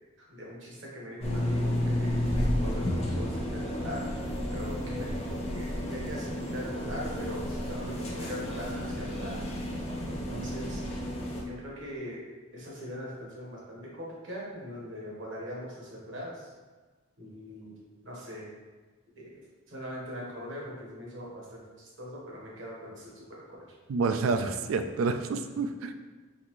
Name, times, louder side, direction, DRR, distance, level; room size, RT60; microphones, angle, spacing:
voice 1, 0.2-2.2 2.6-4.1 4.5-9.5 10.1-10.8 11.4-12.3 12.5-16.5 17.2-17.8 18.0-18.5 19.2-19.4 19.7-23.7, equal, 65° right, -4 dB, 1.3 m, -41 dB
sound 1, 1.2-11.4, left 1 dB, 30° left, 0.6 m, -32 dB
voice 2, 23.9-25.9, right 4 dB, 85° right, 8 dB, 0.4 m, -28 dB
4.1 x 3.4 x 3.1 m, 1.3 s
head